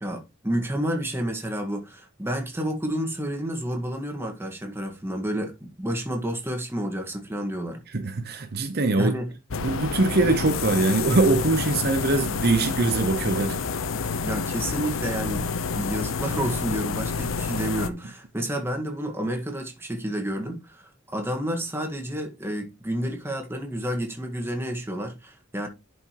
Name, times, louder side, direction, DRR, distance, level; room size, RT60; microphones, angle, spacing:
voice 1, 0.0-7.8 9.0-9.3 14.2-15.5 15.7-25.7, right 1 dB, 10° right, 1.7 m, -30 dB
voice 2, 7.9-9.2 9.6-13.6, right 3 dB, 50° right, 0.9 m, -23 dB
sound 1, 9.5-17.9, left 5 dB, 85° left, 0.8 m, -29 dB
11.0 x 5.1 x 3.0 m
head